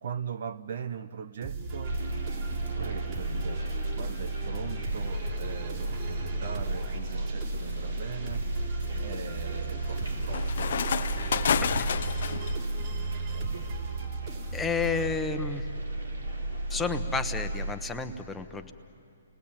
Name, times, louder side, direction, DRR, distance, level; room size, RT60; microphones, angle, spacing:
voice 1, 0.0-2.0 2.8-3.7 4.0-8.4 9.0-11.1, right 7 dB, 60° right, 0.8 m, -40 dB
sound 1, 1.4-15.7, right 5 dB, 40° right, 4.2 m, -38 dB
sound 2, 1.8-17.7, right 1 dB, 80° right, 3.9 m, -33 dB
sound 3, 7.0-7.3 7.9-12.5, left 7 dB, 65° left, 0.8 m, -31 dB
voice 2, 11.6-11.9 14.5-15.6 16.7-18.7, left 5 dB, 10° left, 1.1 m, -31 dB
30.0 x 20.5 x 8.9 m
hypercardioid pair, 135°, 0 cm